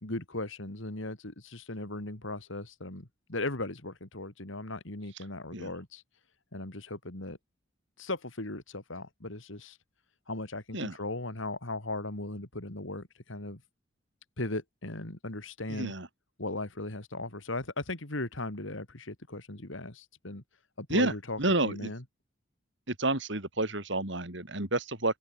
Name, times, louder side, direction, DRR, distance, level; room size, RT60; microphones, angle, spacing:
voice 1, 0.0-6.0 6.5-7.4 8.0-9.8 10.3-13.6 14.4-15.9 16.4-20.4 20.8-22.0, left 2 dB, 75° left, 3.1 m, -37 dB
voice 2, 15.7-16.1 20.9-21.1 21.4-21.9 22.9-25.2, right 2 dB, 65° right, 3.7 m, -30 dB
head